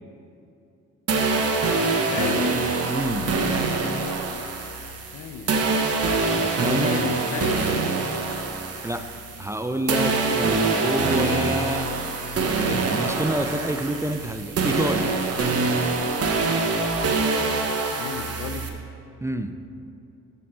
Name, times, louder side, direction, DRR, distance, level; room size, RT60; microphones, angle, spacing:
sound 1, 1.1-9.6 9.9-18.7, right 3 dB, 55° right, 1.1 m, -24 dB
voice 1, 2.0-2.5 5.0-5.6 6.7-7.8 17.8-18.8, left 7 dB, 80° left, 8 dB, 0.7 m, -34 dB
voice 2, 2.9-3.4 6.3-6.9 8.8-12.0 12.5-15.2 19.2-19.6, right 1 dB, 10° right, 8 dB, 0.4 m, -28 dB
7.2 x 7.0 x 6.1 m, 2.7 s
cardioid pair, 90°, 30 cm